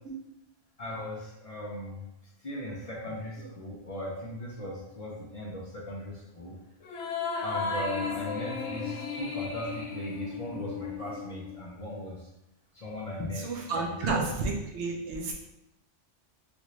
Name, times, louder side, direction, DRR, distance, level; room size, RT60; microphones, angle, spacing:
voice 1, 0.8-2.0 2.4-6.6 7.4-12.3 12.7-14.2, left 1 dB, 45° left, -3 dB, 0.5 m, -38 dB
sound 1, 6.8-11.6, left 5 dB, 80° left, 0.9 m, -34 dB
voice 2, 13.4-15.3, right 3 dB, 85° right, 0 dB, 1.0 m, -31 dB
3.4 x 2.5 x 3.0 m, 0.86 s
omnidirectional pair, 1.1 m